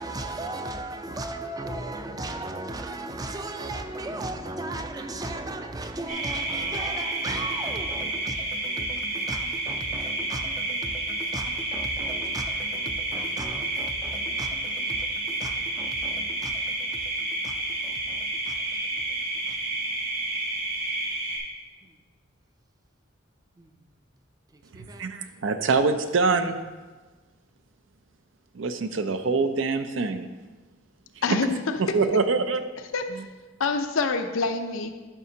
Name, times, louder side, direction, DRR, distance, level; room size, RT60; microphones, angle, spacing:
voice 1, 0.0-19.2 19.5-19.6 21.8-22.0 23.6-23.7 24.5-25.1, right 2 dB, 20° right, 0.4 m, -37 dB
sound 1, 6.1-21.4, right 2 dB, 50° right, 2.2 m, -30 dB
voice 2, 24.8-26.6 28.5-30.3 31.9-32.6 33.1-33.2, right 4 dB, 70° right, 0.5 m, -25 dB
voice 3, 31.2-31.8 32.9-33.0 33.6-34.9, left 4 dB, 85° left, 0.6 m, -26 dB
11.5 x 5.8 x 2.8 m
head